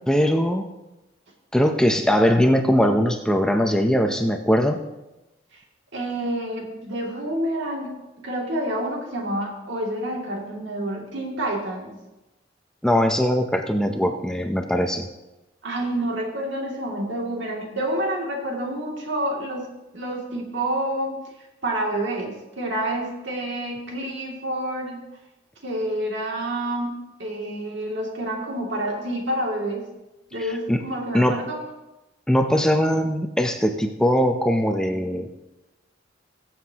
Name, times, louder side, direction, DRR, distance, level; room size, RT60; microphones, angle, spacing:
voice 1, 0.1-0.7 1.5-4.8 12.8-15.1 30.7-30.8 31.1-31.4 32.3-35.3, equal, 5° left, 5 dB, 0.6 m, -20 dB
voice 2, 5.9-8.0 8.2-11.9 15.6-19.7 19.9-21.2 21.6-25.0 25.6-29.9 30.3-31.6, right 1 dB, 65° right, -1 dB, 2.5 m, -28 dB
22.0 x 7.4 x 2.9 m, 1.0 s
head